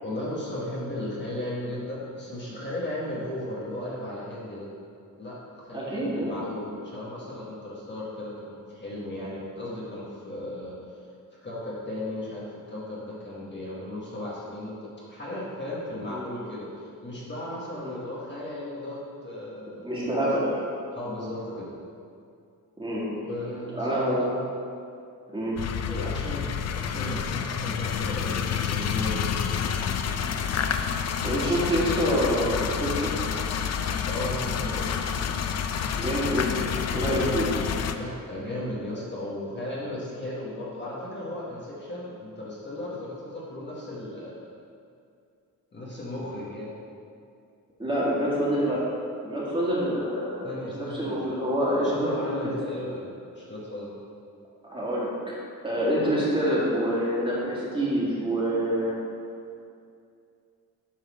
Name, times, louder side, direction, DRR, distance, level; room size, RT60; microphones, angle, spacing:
voice 1, 0.0-4.7 5.2-10.8 11.3-14.8 15.1-16.7 17.0-19.9 20.9-21.7 23.1-24.3 25.9-29.6 34.1-34.9 37.0-37.4 37.9-44.5 45.7-46.7 50.4-53.1 53.3-53.9, left 1 dB, 35° left, -6 dB, 1.4 m, -35 dB
voice 2, 5.7-6.6 16.1-16.2 17.8-18.0 19.8-20.6 22.8-23.0 23.7-24.3 25.3-25.5 31.2-33.2 35.9-37.5 47.8-48.8 49.2-52.6 54.6-55.1 55.6-59.0, equal, 15° right, -8 dB, 1.9 m, -27 dB
sound 1, 25.6-37.9, left 7 dB, 50° left, 0.4 m, -29 dB
8.8 x 4.0 x 6.0 m, 2.4 s
wide cardioid pair, 165°, 34 cm